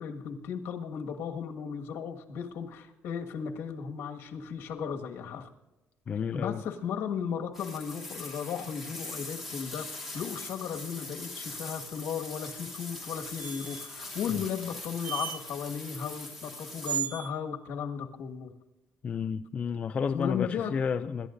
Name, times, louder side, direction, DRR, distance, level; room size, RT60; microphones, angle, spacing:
voice 1, 0.0-5.5 6.3-18.5 20.1-20.8, left 7 dB, 70° left, 1.7 m, -35 dB
voice 2, 6.1-6.6 14.3-14.4 19.0-21.3, left 6 dB, 30° left, 0.4 m, -31 dB
sound 1, 7.5-17.0, left 2 dB, 5° right, 2.8 m, -42 dB
sound 2, 13.4-13.9 15.0-15.4 16.8-17.3, right 10 dB, 40° right, 0.5 m, -35 dB
26.5 x 12.5 x 2.6 m
cardioid pair, 175°, 4 cm